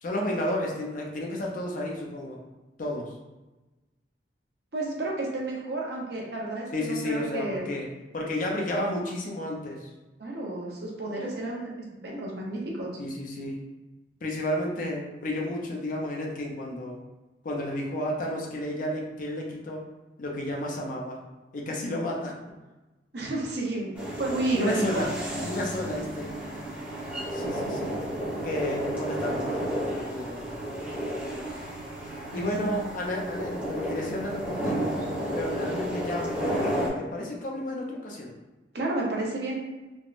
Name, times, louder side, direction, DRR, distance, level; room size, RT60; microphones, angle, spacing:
voice 1, 0.0-2.4 2.8-3.1 6.7-7.9 8.1-9.9 13.0-13.5 14.2-17.0 17.4-19.9 20.2-21.2 21.5-22.4 24.5-25.1 25.4-26.3 27.3-27.9 28.4-29.6 30.1-30.6 32.3-34.9 35.3-38.3, left 1 dB, 45° left, -1 dB, 0.5 m, -32 dB
voice 2, 4.7-7.7 10.2-11.7 12.0-12.9 23.1-25.1 32.3-32.7 38.7-39.6, right 2 dB, 60° right, -2 dB, 0.7 m, -31 dB
sound 1, 23.9-36.9, equal, 10° right, 0.7 m, -32 dB
3.4 x 2.0 x 2.4 m, 1.1 s
head